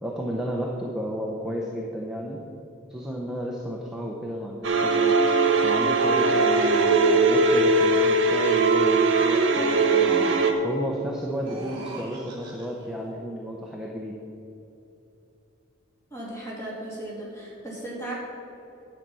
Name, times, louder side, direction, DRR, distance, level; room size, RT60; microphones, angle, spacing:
voice 1, 0.0-2.4 2.9-5.2 5.6-10.2 10.6-14.2, equal, 5° right, -2 dB, 0.8 m, -32 dB
sound 1, 4.6-10.5, right 3 dB, 65° right, 1.1 m, -20 dB
sound 2, 9.4-10.8 11.3-12.9, right 1 dB, 20° right, 1.8 m, -41 dB
voice 2, 16.1-18.1, right 1 dB, 15° left, -5 dB, 2.7 m, -36 dB
10.5 x 7.5 x 5.5 m, 2.9 s
head